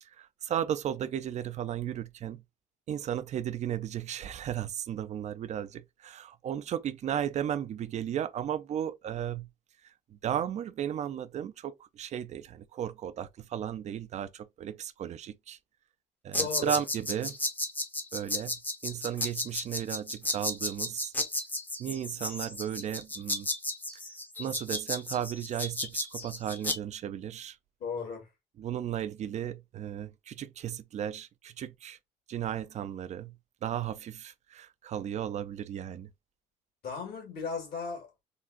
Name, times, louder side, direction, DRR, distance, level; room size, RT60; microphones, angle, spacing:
voice 1, 0.0-2.4 2.9-9.5 9.8-15.6 16.2-17.4 18.1-21.1 21.8-23.5 24.4-27.6 28.6-32.0 32.3-33.3 33.6-36.1, right 10 dB, 45° right, 0.4 m, -35 dB
sound 1, 16.3-26.8, left 1 dB, 10° left, 0.7 m, -33 dB
voice 2, 16.4-16.8 27.8-28.3 36.8-38.1, left 5 dB, 60° left, 1.8 m, -36 dB
3.8 x 2.2 x 2.5 m
cardioid pair, 110°, 17 cm